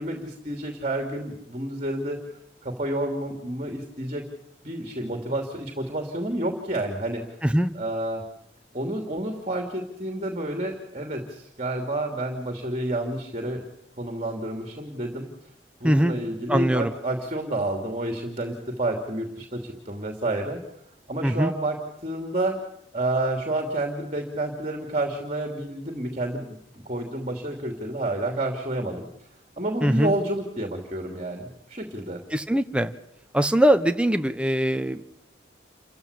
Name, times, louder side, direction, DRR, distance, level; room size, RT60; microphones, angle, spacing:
voice 1, 0.0-2.2 2.6-4.2 4.6-7.4 7.7-8.2 8.7-13.6 14.0-15.3 15.8-20.6 21.1-22.6 22.9-29.1 29.6-32.2, right 1 dB, 35° right, 3 dB, 2.9 m, -29 dB
voice 2, 16.5-16.9 21.2-21.5 29.8-30.1 32.3-32.9 33.3-35.0, equal, 5° right, 8 dB, 1.1 m, -21 dB
28.5 x 15.0 x 8.7 m, 0.76 s
head